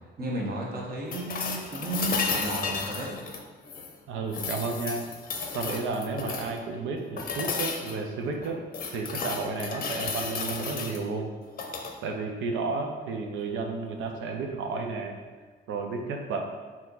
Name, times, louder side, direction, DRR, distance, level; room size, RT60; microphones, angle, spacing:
voice 1, 0.2-3.2, right 1 dB, 50° right, -3 dB, 1.2 m, -33 dB
sound 1, 1.1-3.9 4.3-6.6 7.2-8.0 8.4-11.0 11.5-11.9 14.0-14.1, left 4 dB, 45° left, 0.6 m, -33 dB
voice 2, 4.1-5.1 5.5-8.6 8.9-11.3 12.0-15.2 15.7-16.4, right 4 dB, 85° right, 3 dB, 0.6 m, -32 dB
4.4 x 2.9 x 3.8 m, 1.4 s
cardioid pair, 90°, 20 cm